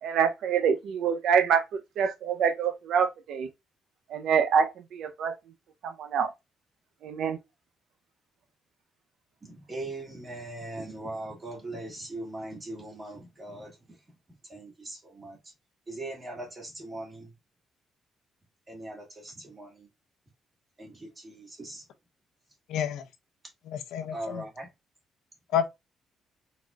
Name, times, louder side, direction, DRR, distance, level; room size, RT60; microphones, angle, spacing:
voice 1, 0.0-3.5 4.1-5.4 5.8-6.3 7.0-7.4, right 7 dB, 65° right, 0.6 m, -26 dB
voice 2, 9.4-14.0 14.3-15.5 15.9-17.3 18.7-19.9 20.8-21.8 24.1-24.7, right 2 dB, 20° right, 2.0 m, -40 dB
voice 3, 22.7-23.0 23.7-24.4 25.5-25.7, left 9 dB, 85° left, 0.7 m, -29 dB
4.3 x 4.0 x 2.4 m
cardioid pair, 160°, 0 cm